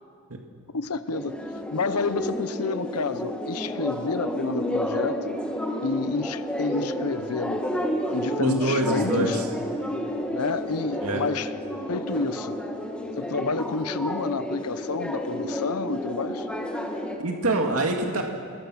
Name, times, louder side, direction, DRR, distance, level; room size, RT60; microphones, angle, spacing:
voice 1, 0.7-1.4 1.7-5.4 5.8-7.6 8.1-9.4 10.3-11.5 11.9-12.6 13.2-16.5, left 4 dB, 90° left, 13 dB, 0.8 m, -29 dB
sound 1, 1.1-17.2, equal, 5° left, 1.9 m, -31 dB
voice 2, 8.4-9.5 11.0-11.2 17.2-18.2, right 2 dB, 70° right, 2 dB, 2.2 m, -25 dB
29.0 x 21.5 x 6.4 m, 2.2 s
head